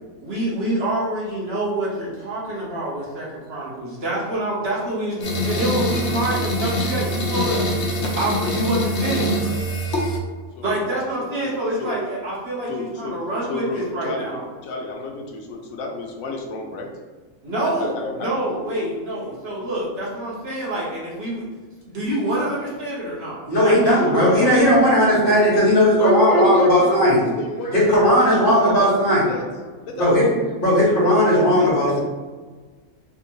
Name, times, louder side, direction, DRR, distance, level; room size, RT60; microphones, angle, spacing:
voice 1, 0.2-7.7 8.2-9.3 10.6-14.4 17.4-21.4 21.9-24.5, right 1 dB, 55° right, -6 dB, 1.1 m, -26 dB
sound 1, 5.2-10.2, equal, 60° left, 1.0 m, -24 dB
voice 2, 10.5-11.5 11.8-11.9 12.7-13.2 13.5-14.3 14.6-16.9 17.6-18.3 24.1-24.2 25.9-28.9 29.3-29.4 29.8-30.3 31.3-32.0, left 3 dB, 85° left, 1 dB, 1.1 m, -32 dB
voice 3, 23.5-27.2 27.7-29.2 30.0-30.3 30.6-32.0, equal, 40° left, -7 dB, 1.4 m, -16 dB
3.5 x 2.7 x 2.9 m, 1.4 s
omnidirectional pair, 1.4 m